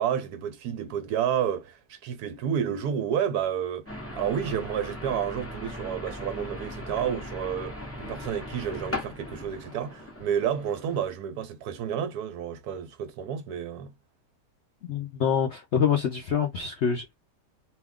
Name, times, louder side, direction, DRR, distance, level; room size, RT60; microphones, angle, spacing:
voice 1, 0.0-3.9 4.1-13.9, right 8 dB, 70° right, 1.0 m, -30 dB
sound 1, 3.9-11.1, left 1 dB, 15° left, 0.6 m, -38 dB
voice 2, 14.9-17.1, left 7 dB, 70° left, 0.6 m, -26 dB
2.8 x 2.3 x 3.5 m
omnidirectional pair, 1.9 m